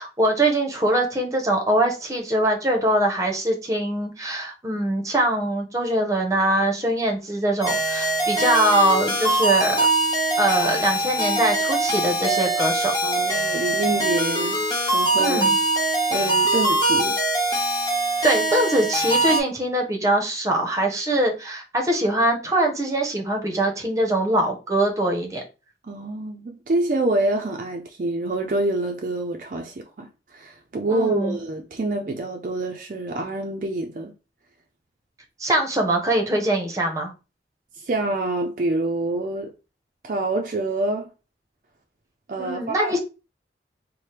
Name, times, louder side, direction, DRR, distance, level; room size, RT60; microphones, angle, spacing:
voice 1, 0.0-9.9 10.4-12.9 15.2-15.6 18.2-25.4 30.9-31.4 35.4-37.1 42.4-43.0, right 1 dB, 20° right, 0.7 m, -22 dB
sound 1, 7.6-19.4, right 2 dB, 25° left, 1.0 m, -22 dB
voice 2, 13.0-14.6 14.9-15.5 16.1-17.2 25.9-34.1 37.7-39.5 40.0-41.1 42.3-43.0, right 2 dB, 45° right, 0.4 m, -26 dB
3.2 x 2.1 x 4.2 m
head